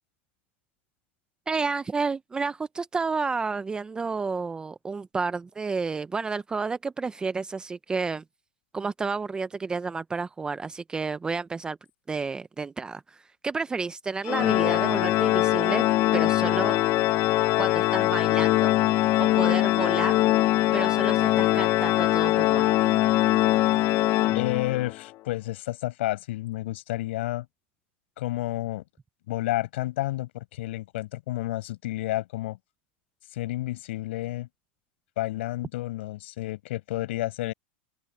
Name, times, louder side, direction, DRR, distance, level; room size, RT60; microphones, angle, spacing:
voice 1, 1.5-8.2 8.7-11.8 12.1-15.8 16.1-16.8 17.6-18.8 19.2-20.2 20.7-22.7, right 4 dB, 15° right, 0.6 m, -31 dB
Organ, 14.3-25.0, left 17 dB, 40° left, 0.6 m, -22 dB
voice 2, 24.3-27.5 28.2-28.8 29.3-32.6 33.3-34.5 35.2-37.5, left 17 dB, 75° left, 5.8 m, -30 dB
open air
supercardioid pair, 130°, 6 cm